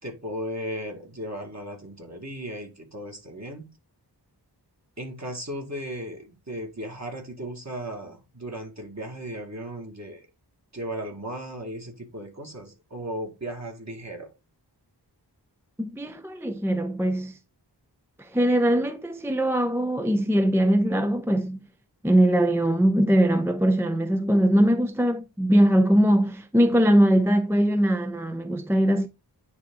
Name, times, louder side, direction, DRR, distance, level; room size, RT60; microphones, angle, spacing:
voice 1, 0.0-3.7 5.0-10.3 10.7-14.3, equal, 40° right, 2.1 m, -36 dB
voice 2, 15.8-17.4 18.2-21.6 22.0-29.1, right 1 dB, 5° right, 0.5 m, -21 dB
9.7 x 3.5 x 3.8 m
wide cardioid pair, 60°, 42 cm